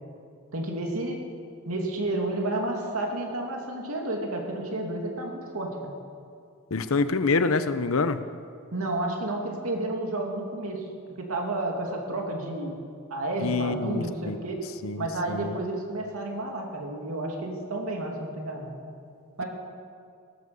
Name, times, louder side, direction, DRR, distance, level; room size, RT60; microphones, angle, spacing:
voice 1, 0.5-1.2 1.7-5.9 8.7-10.9 11.2-12.7 13.1-14.6 15.0-18.8 19.4-19.5, right 2 dB, 75° right, 1 dB, 2.6 m, -31 dB
voice 2, 6.7-8.2 13.4-14.4 14.8-15.5, left 4 dB, 65° left, 12 dB, 0.7 m, -26 dB
17.5 x 10.0 x 7.0 m, 2.3 s
head